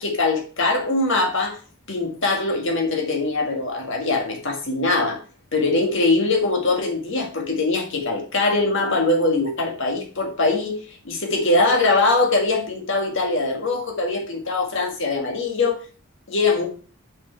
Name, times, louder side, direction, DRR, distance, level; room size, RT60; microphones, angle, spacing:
voice 1, 0.0-1.6 1.9-5.2 5.5-10.7 11.0-15.8 16.3-16.7, left 3 dB, 55° left, 2 dB, 1.7 m, -22 dB
6.3 x 6.0 x 4.4 m, 0.39 s
head